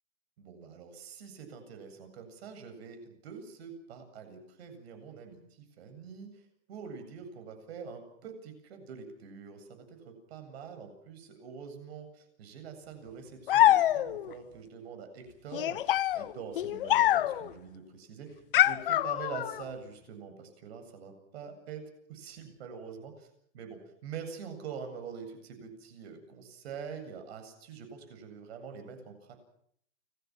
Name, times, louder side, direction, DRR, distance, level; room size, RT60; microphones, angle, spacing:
voice 1, 0.4-6.4 6.7-23.3 23.5-29.3, right 6 dB, 50° right, 7 dB, 7.9 m, -45 dB
sound 1, 13.5-14.3 15.5-17.5 18.5-19.6, left 13 dB, 40° left, 0.9 m, -25 dB
29.5 x 21.5 x 6.1 m, 0.66 s
hypercardioid pair, 165°, 40 cm